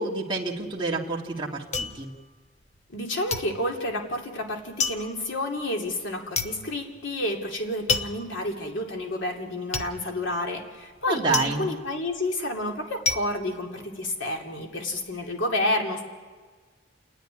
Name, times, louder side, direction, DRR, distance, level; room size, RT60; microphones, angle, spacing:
voice 1, 0.0-2.1 11.1-11.7, right 3 dB, 25° right, -2 dB, 1.6 m, -28 dB
sound 1, 0.6-3.0 3.3-14.4 14.7-15.3, left 4 dB, 35° left, 0.9 m, -32 dB
voice 2, 2.9-16.0, left 1 dB, 75° left, 1 dB, 2.8 m, -30 dB
29.0 x 10.5 x 9.9 m, 1.5 s
head